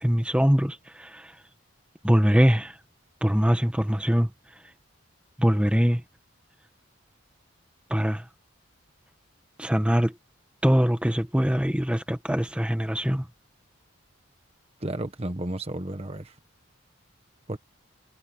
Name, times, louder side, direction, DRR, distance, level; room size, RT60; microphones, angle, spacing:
voice 1, 0.0-1.3 2.0-2.8 3.2-4.3 5.4-6.0 7.9-8.2 9.6-10.1 10.6-13.2, equal, 5° right, 1.4 m, -22 dB
voice 2, 14.8-16.4 17.5-17.6, right 1 dB, 30° right, 1.1 m, -32 dB
head